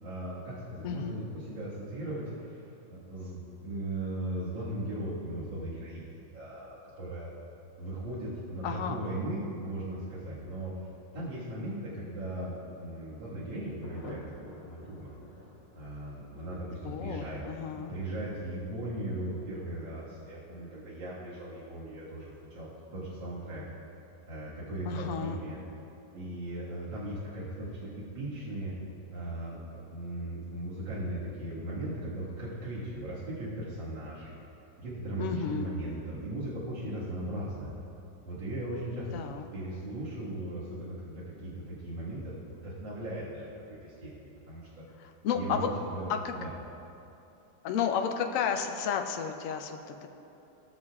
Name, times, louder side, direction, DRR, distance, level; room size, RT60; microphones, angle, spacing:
voice 1, 0.0-7.3 7.8-10.7 11.1-15.2 15.7-17.4 17.7-23.6 24.3-25.6 26.1-28.7 29.1-34.4 34.8-37.8 38.2-39.3 39.5-44.8 45.3-46.5, right 1 dB, 80° right, -10 dB, 2.4 m, -38 dB
voice 2, 0.8-1.2 8.6-9.0 16.8-17.9 24.9-25.4 35.2-35.7 39.1-39.4 45.0-45.7 46.1-46.3 47.6-50.1, left 7 dB, 70° left, 5 dB, 0.8 m, -32 dB
Thunder, 13.8-29.9 30.2-30.3 30.6-30.7 31.0-31.4, left 1 dB, 40° left, 1.1 m, -55 dB
18.0 x 6.5 x 2.4 m, 2.9 s
omnidirectional pair, 2.1 m